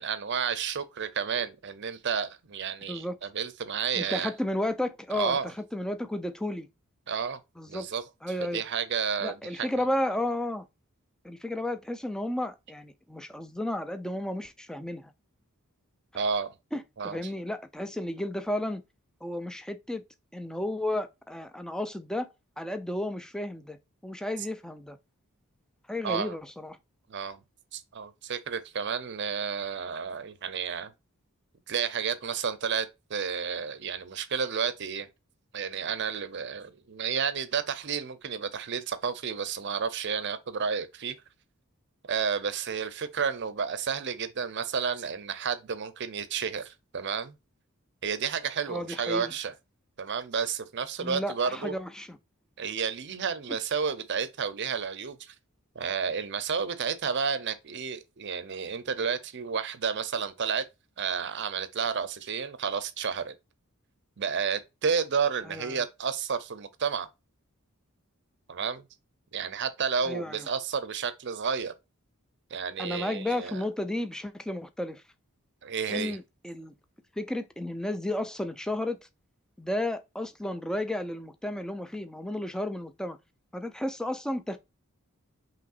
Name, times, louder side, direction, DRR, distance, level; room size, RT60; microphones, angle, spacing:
voice 1, 0.0-4.3 5.1-5.5 7.1-7.4 7.7-8.0 8.4-9.9 16.1-16.5 17.0-17.2 26.0-26.4 27.1-27.4 27.7-30.9 31.7-35.1 35.5-41.2 42.1-47.3 48.0-49.5 50.0-51.7 52.6-55.3 55.7-60.6 61.0-63.3 64.2-67.1 68.5-68.9 69.3-71.7 72.5-73.6 75.6-76.2, right 6 dB, 55° right, 0.6 m, -31 dB
voice 2, 3.9-6.7 7.6-7.9 8.2-8.6 9.2-10.7 11.2-15.1 16.7-18.8 19.2-20.0 20.3-22.3 22.6-25.0 25.9-26.8 48.7-49.3 51.0-52.2 65.4-65.8 70.0-70.5 72.8-75.0 75.9-76.7 77.2-79.0 79.6-83.2 83.5-84.6, left 1 dB, 5° left, 0.4 m, -33 dB
5.5 x 3.0 x 2.4 m
head